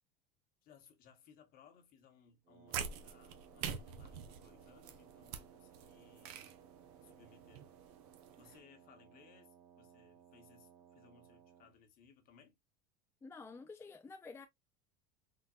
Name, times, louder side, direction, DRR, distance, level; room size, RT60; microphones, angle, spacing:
voice 1, 0.6-6.5 7.0-7.7 8.4-12.6, left 6 dB, 45° left, 1.1 m, -64 dB
Wind instrument woodwind instrument, 2.4-11.8, right 8 dB, 40° right, 1.0 m, -62 dB
sound 1, 2.7-8.6, right 7 dB, 70° right, 0.6 m, -46 dB
voice 2, 13.2-14.5, left 4 dB, 10° left, 0.3 m, -50 dB
4.0 x 2.2 x 2.3 m
supercardioid pair, 105°, 21 cm